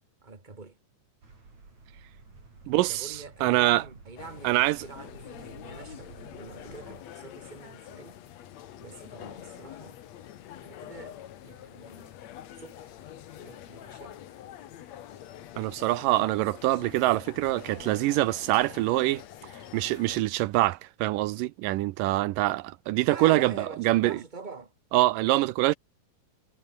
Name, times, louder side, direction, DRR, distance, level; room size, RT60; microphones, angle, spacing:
voice 1, 0.2-0.8 2.9-8.2 8.8-10.0 10.6-12.1 12.5-12.9 13.4-14.2 23.0-24.7, right 4 dB, 15° right, 2.8 m, -45 dB
sound 1, 1.2-7.0, right 4 dB, 55° right, 7.6 m, -51 dB
voice 2, 2.7-3.8 4.4-4.8 15.6-19.2 19.7-24.2 24.9-25.7, right 17 dB, 85° right, 2.3 m, -25 dB
sound 2, 4.2-20.2, left 11 dB, 60° left, 2.3 m, -46 dB
omnidirectional pair, 3.8 m